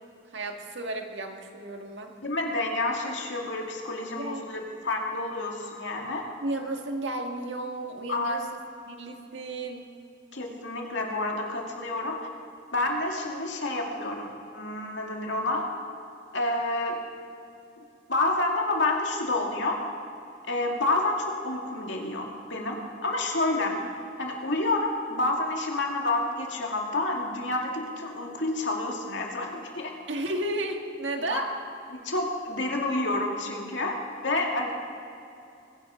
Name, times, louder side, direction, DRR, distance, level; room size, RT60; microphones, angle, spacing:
voice 1, 0.3-2.1 4.1-4.4 6.4-9.9 30.1-31.5, right 2 dB, 85° right, 3 dB, 1.7 m, -33 dB
voice 2, 2.2-6.2 8.1-8.4 10.3-12.2 12.7-15.7 16.3-17.0 18.1-19.8 20.5-23.8 24.2-29.9 31.3-31.4 31.9-34.7, left 2 dB, 85° left, 0 dB, 2.4 m, -29 dB
23.0 x 10.5 x 5.1 m, 2.6 s
head